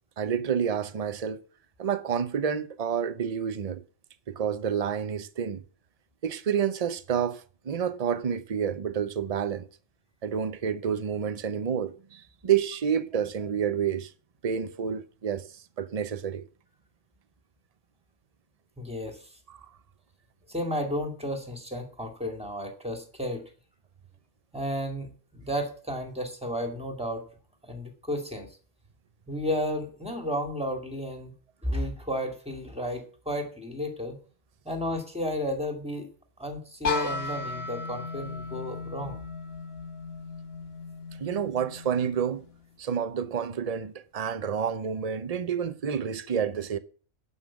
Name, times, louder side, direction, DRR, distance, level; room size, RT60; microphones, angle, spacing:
voice 1, 0.2-1.4 1.8-3.8 4.3-5.6 6.2-9.7 10.2-14.1 14.4-15.5 15.8-16.5 19.5-19.6 41.2-42.4 42.8-46.8, right 8 dB, 35° right, 0.6 m, -29 dB
voice 2, 18.8-19.3 20.5-23.4 24.5-27.2 27.6-28.6 29.3-31.3 31.6-34.2 34.6-36.1 36.4-39.2, equal, 5° right, 2.3 m, -32 dB
sound 1, 36.8-42.6, left 4 dB, 45° left, 1.5 m, -36 dB
11.5 x 5.8 x 7.3 m
omnidirectional pair, 1.4 m